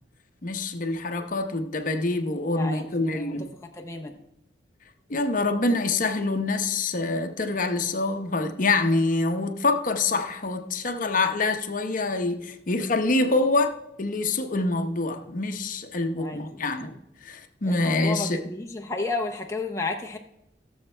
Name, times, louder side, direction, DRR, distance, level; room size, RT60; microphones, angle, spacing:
voice 1, 0.4-3.5 5.1-17.0 17.2-18.4, left 3 dB, 45° left, 0.8 m, -26 dB
voice 2, 2.5-2.8 3.1-3.3 3.7-4.2 16.1-16.6 17.7-20.2, left 3 dB, 15° left, 0.7 m, -32 dB
17.0 x 7.2 x 3.3 m
head